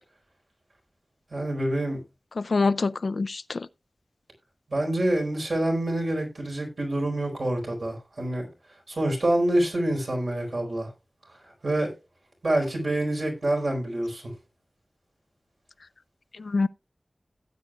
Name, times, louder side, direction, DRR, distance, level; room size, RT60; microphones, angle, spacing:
voice 1, 1.3-2.0 4.7-8.5 8.9-10.9 11.6-11.9 12.4-14.3, right 1 dB, 70° right, 4.3 m, -26 dB
voice 2, 2.4-3.7 16.5-16.7, left 3 dB, 85° left, 0.4 m, -25 dB
17.0 x 8.5 x 2.3 m
wide cardioid pair, 65°, 0 cm